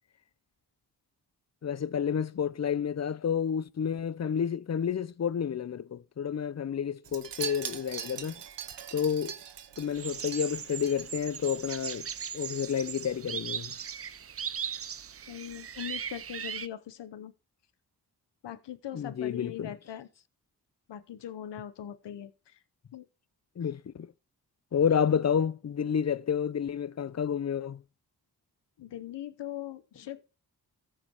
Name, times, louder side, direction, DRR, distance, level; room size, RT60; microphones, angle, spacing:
voice 1, 1.6-8.4 8.9-9.3 9.8-12.1 12.3-13.7 18.9-19.7 23.6-24.1 24.7-27.8, left 7 dB, 40° left, 0.6 m, -30 dB
Wind chime, 7.0-11.5 11.8-12.1 12.4-12.5, right 9 dB, 85° right, 1.0 m, -41 dB
sound 1, 9.9-16.7, right 8 dB, 35° right, 0.5 m, -38 dB
voice 2, 15.3-17.3 18.4-20.1 20.9-22.6 22.9-23.1 28.8-30.2, left 11 dB, 85° left, 0.8 m, -41 dB
14.5 x 5.0 x 4.4 m
cardioid pair, 50°, 41 cm